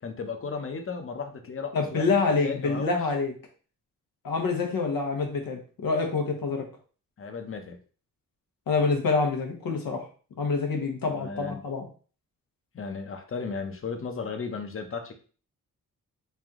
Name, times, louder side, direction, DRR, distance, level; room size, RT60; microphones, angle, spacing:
voice 1, 0.0-2.2 2.4-3.0 7.2-7.8 11.1-11.6 12.7-15.1, left 5 dB, 40° left, 5 dB, 0.8 m, -35 dB
voice 2, 1.7-3.3 4.2-6.6 8.7-10.0 10.4-11.9, left 4 dB, 85° left, 2 dB, 1.1 m, -26 dB
3.3 x 2.8 x 3.6 m, 0.40 s
cardioid pair, 90°, 34 cm